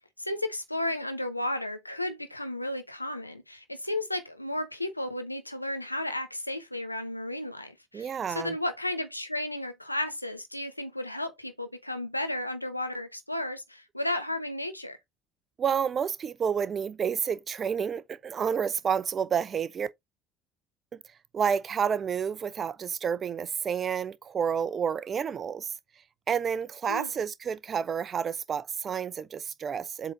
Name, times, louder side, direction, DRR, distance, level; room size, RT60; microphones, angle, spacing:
voice 1, 0.2-15.0 26.9-27.1, left 1 dB, 90° left, 1.0 m, -33 dB
voice 2, 7.9-8.5 15.6-19.9 21.3-25.7 26.3-30.1, right 7 dB, 35° right, 0.6 m, -30 dB
7.7 x 3.9 x 3.9 m
figure-of-eight pair, 60°, 0 cm